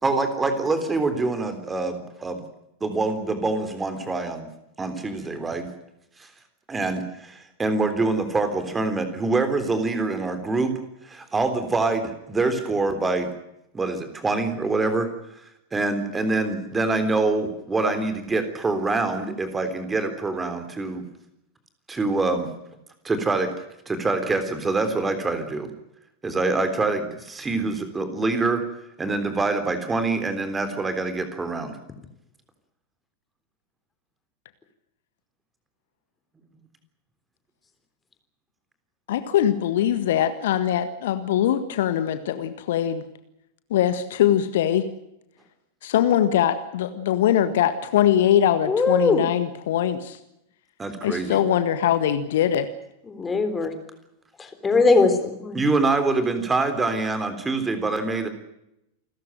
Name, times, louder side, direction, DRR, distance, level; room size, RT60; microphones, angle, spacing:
voice 1, 0.0-2.4 2.8-4.5 4.8-5.7 6.2-6.3 6.7-10.8 11.0-13.3 13.7-15.1 15.7-21.0 21.9-22.5 23.0-23.6 23.9-25.7 26.2-28.6 29.0-31.8 50.8-51.4 55.5-58.3, right 3 dB, 15° right, 9 dB, 3.6 m, -25 dB
voice 2, 39.1-43.0 43.7-44.9 45.8-50.2 51.0-52.7, left 10 dB, 55° left, 11 dB, 1.6 m, -22 dB
voice 3, 48.7-49.3 53.1-53.7 54.4-55.6, left 3 dB, 15° left, 8 dB, 3.8 m, -20 dB
28.5 x 14.5 x 9.1 m, 0.84 s
figure-of-eight pair, 90°, 0 cm